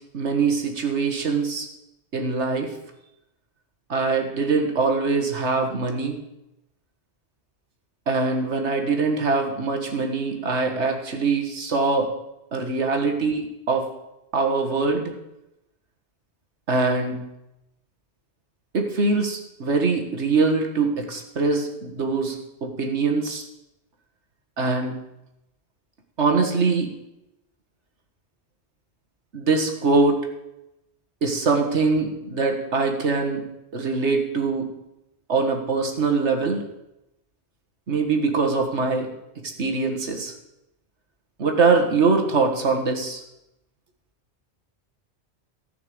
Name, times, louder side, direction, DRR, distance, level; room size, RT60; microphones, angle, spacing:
voice 1, 0.1-1.7 2.1-2.7 3.9-6.2 8.1-12.1 12.5-13.9 14.3-15.1 16.7-17.2 18.7-23.4 24.6-25.0 26.2-26.9 29.3-30.3 31.2-33.4 33.7-34.7 35.3-36.6 37.9-39.1 39.6-40.3 41.4-43.2, right 4 dB, 90° right, 3 dB, 2.0 m, -23 dB
14.5 x 6.0 x 7.8 m, 0.90 s
omnidirectional pair, 1.1 m